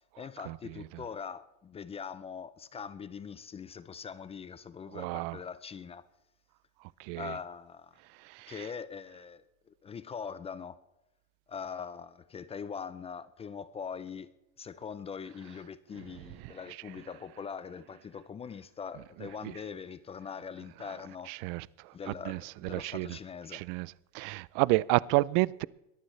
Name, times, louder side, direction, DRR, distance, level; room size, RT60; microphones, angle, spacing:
voice 1, 0.2-6.0 7.1-7.9 8.5-10.8 11.5-14.3 14.6-21.3 21.9-23.6, left 6 dB, 15° left, 0.4 m, -42 dB
voice 2, 4.9-5.4 7.1-7.3 21.3-21.6 22.3-22.4 22.7-23.1 23.5-23.9 24.1-25.6, right 21 dB, 60° right, 0.5 m, -29 dB
21.5 x 14.0 x 3.2 m
supercardioid pair, 140°, 36 cm